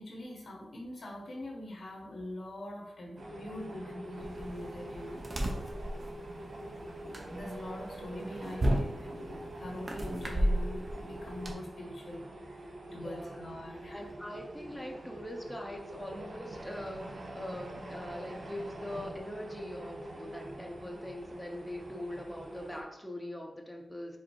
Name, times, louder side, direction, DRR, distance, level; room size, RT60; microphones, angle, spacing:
voice 1, 0.0-5.2 7.0-14.0, left 1 dB, 70° left, 0 dB, 1.2 m, -43 dB
sound 1, 3.2-22.8, right 1 dB, 75° right, 0.8 m, -45 dB
sound 2, 4.2-11.5, equal, 40° right, 0.8 m, -35 dB
voice 2, 5.8-6.1 12.9-13.4 13.9-24.2, left 1 dB, 10° left, 0 dB, 0.7 m, -42 dB
5.0 x 2.0 x 4.5 m, 0.85 s
cardioid pair, 60°, 0 cm